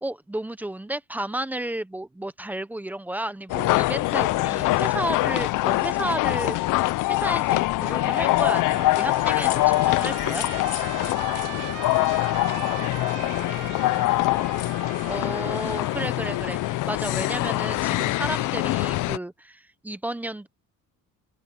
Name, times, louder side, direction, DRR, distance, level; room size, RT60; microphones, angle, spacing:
voice 1, 0.0-6.6 7.0-10.5 15.1-20.5, right 1 dB, 5° right, 0.7 m, -32 dB
sound 1, 3.5-19.2, left 18 dB, 70° left, 0.5 m, -24 dB
Trumpet, 7.8-16.9, right 16 dB, 50° right, 0.5 m, -40 dB
voice 2, 11.3-14.9, left 7 dB, 30° left, 1.8 m, -45 dB
cardioid pair, 160°, 33 cm